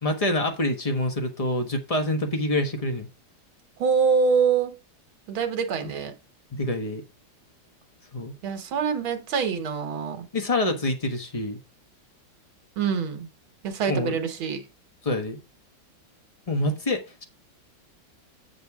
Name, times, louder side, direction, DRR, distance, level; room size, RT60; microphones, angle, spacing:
voice 1, 0.0-3.1 5.8-5.9 6.5-7.0 8.1-8.3 10.3-11.6 13.9-14.2 15.0-15.4 16.5-17.2, left 1 dB, 20° left, 1.2 m, -26 dB
voice 2, 3.8-4.8 5.3-6.1 8.4-10.3 12.8-13.3 13.6-14.6, right 6 dB, 85° right, 2.1 m, -25 dB
8.5 x 7.0 x 3.6 m
omnidirectional pair, 2.2 m